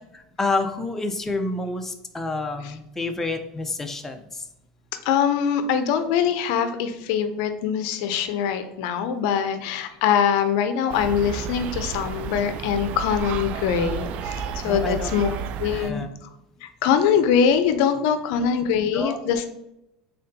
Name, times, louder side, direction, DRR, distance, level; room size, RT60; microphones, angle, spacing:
voice 1, 0.4-4.2 14.6-15.1 15.7-16.1 18.9-19.2, left 2 dB, 15° left, 6 dB, 0.4 m, -28 dB
voice 2, 5.0-15.3 15.6-16.3 16.6-19.5, left 7 dB, 70° left, 9 dB, 0.5 m, -23 dB
sound 1, 10.9-15.9, right 6 dB, 55° right, 0.3 m, -31 dB
4.1 x 3.7 x 2.6 m, 0.85 s
supercardioid pair, 120°, 3 cm